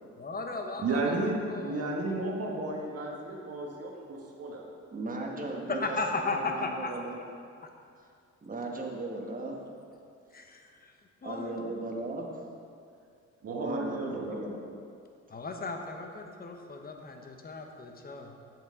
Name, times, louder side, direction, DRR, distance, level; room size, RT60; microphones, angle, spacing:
voice 1, 0.2-2.1 5.7-7.1 10.3-10.9 11.2-11.5 15.3-18.3, left 3 dB, 30° left, 3 dB, 1.0 m, -36 dB
voice 2, 0.8-4.7 13.4-14.4, right 2 dB, 55° right, 0 dB, 1.4 m, -33 dB
voice 3, 4.9-7.2 8.4-9.6 11.2-12.2 13.6-14.6, right 2 dB, 25° right, 0 dB, 1.3 m, -37 dB
7.9 x 7.4 x 3.7 m, 2.4 s
cardioid pair, 90°, 30 cm